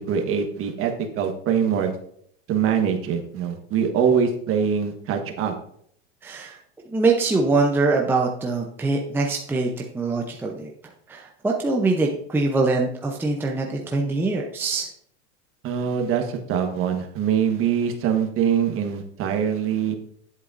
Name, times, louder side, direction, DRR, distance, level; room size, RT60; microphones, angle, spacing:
voice 1, 0.1-1.9 2.5-5.5 15.6-19.9, right 7 dB, 40° right, 4 dB, 1.4 m, -23 dB
voice 2, 6.2-6.6 6.9-10.7 11.1-14.9, right 3 dB, 5° right, 0 dB, 0.7 m, -23 dB
10.0 x 8.2 x 2.6 m, 0.66 s
supercardioid pair, 140°, 35 cm